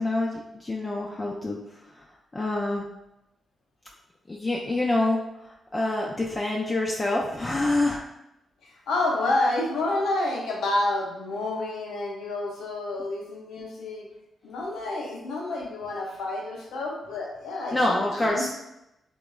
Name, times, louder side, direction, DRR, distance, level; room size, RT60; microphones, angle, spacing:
voice 1, 0.0-1.6 1.9-2.1 2.3-2.9 4.3-8.0 17.7-18.5, left 2 dB, 30° left, -2 dB, 0.4 m, -26 dB
voice 2, 8.9-14.1 14.4-18.0 18.3-18.5, left 2 dB, 80° left, -1 dB, 0.5 m, -29 dB
2.8 x 2.1 x 2.2 m, 0.89 s
supercardioid pair, 45°, 0 cm